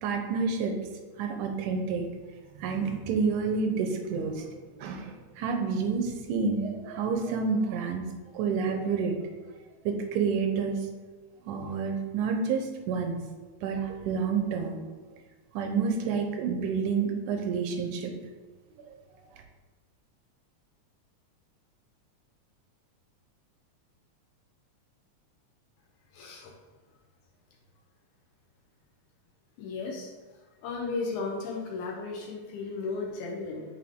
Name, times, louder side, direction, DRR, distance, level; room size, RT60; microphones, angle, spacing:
voice 1, 0.0-0.8 1.2-2.1 2.6-8.1 8.3-9.2 9.9-10.8 11.5-13.2 13.6-14.8 15.5-18.1, right 5 dB, 85° right, 4 dB, 2.2 m, -29 dB
voice 2, 26.1-26.5 29.6-30.1 30.6-33.6, left 4 dB, 80° left, -1 dB, 2.2 m, -34 dB
7.7 x 3.7 x 3.6 m, 1.3 s
omnidirectional pair, 3.5 m